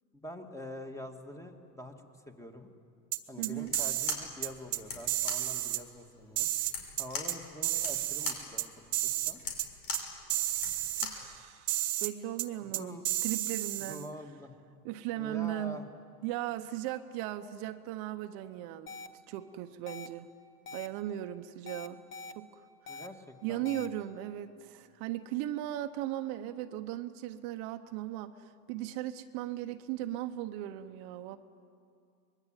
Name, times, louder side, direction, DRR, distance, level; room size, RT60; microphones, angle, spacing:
voice 1, 0.1-1.9 2.3-2.7 3.3-6.5 7.0-9.4 12.7-13.0 13.8-14.5 15.1-15.9 22.9-23.8, left 1 dB, 5° left, 4 dB, 2.1 m, -45 dB
sound 1, 3.1-4.2 4.4-4.8 5.1-5.8 6.4-7.4 7.6-8.7 8.9-9.3 9.6-9.7 9.9-10.0 10.3-11.1 11.7-12.1 12.4-12.5 12.7-14.1, right 16 dB, 85° right, 1.7 m, -32 dB
voice 2, 3.4-3.7 11.0-14.1 14.8-15.8 16.2-19.0 19.3-20.3 20.7-22.0 22.3-22.6 22.9-23.0 23.4-31.4, right 13 dB, 50° right, 8 dB, 1.2 m, -37 dB
sound 2, 3.6-11.3, left 5 dB, 85° left, 5.6 m, -41 dB
sound 3, 18.9-19.1 19.9-20.1 20.7-20.9 21.7-22.3 22.9-23.1 23.7-23.9, left 3 dB, 25° left, 1.4 m, -43 dB
24.0 x 21.5 x 9.1 m, 2.4 s
supercardioid pair, 120°, 47 cm